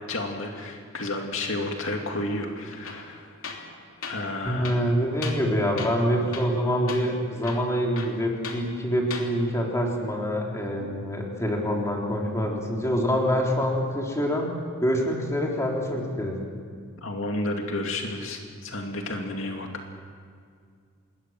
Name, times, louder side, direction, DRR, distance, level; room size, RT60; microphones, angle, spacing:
voice 1, 0.1-3.7 4.0-4.7 17.0-19.7, left 2 dB, 70° left, 2 dB, 2.4 m, -31 dB
Tools, 2.8-3.1 3.4-3.7 4.0-4.2 4.6-5.5 5.8-6.0 6.3-6.6 6.9-7.0 7.4-8.6 9.0-9.3, left 5 dB, 85° left, 3.2 m, -37 dB
voice 2, 4.4-14.5 14.8-16.4, equal, 15° left, -1 dB, 3.8 m, -25 dB
27.0 x 21.0 x 7.6 m, 2.1 s
head